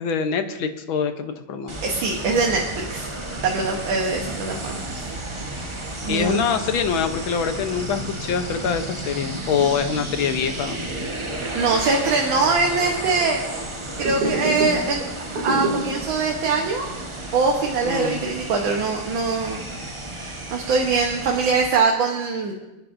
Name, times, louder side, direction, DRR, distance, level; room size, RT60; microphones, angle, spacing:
voice 1, 0.0-1.8 6.1-10.8 17.8-18.2, left 6 dB, 70° left, 8 dB, 1.7 m, -24 dB
sound 1, 1.7-21.7, right 1 dB, 20° right, 0.8 m, -33 dB
voice 2, 1.8-3.1 3.4-5.1 6.1-6.5 11.1-13.4 14.0-15.1 15.3-16.9 17.3-19.8 20.1-22.5, right 4 dB, 65° right, 1 dB, 1.9 m, -23 dB
sound 2, 14.0-15.0 15.2-16.1 16.5-16.6 16.9-17.1 17.6-19.0 19.3-20.0, right 1 dB, 50° right, 2.8 m, -27 dB
27.5 x 10.5 x 2.6 m, 1.0 s
omnidirectional pair, 2.4 m